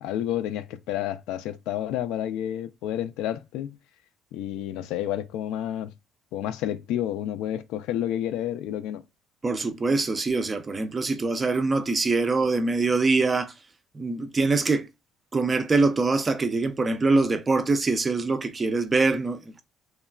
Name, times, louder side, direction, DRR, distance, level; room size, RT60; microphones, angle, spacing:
voice 1, 0.0-3.8 4.3-5.9 6.3-9.0, left 11 dB, 90° left, 0.3 m, -30 dB
voice 2, 9.4-13.5 13.9-14.9 15.3-19.6, right 3 dB, 20° right, 0.3 m, -24 dB
3.1 x 2.2 x 2.2 m
cardioid pair, 150°, 0 cm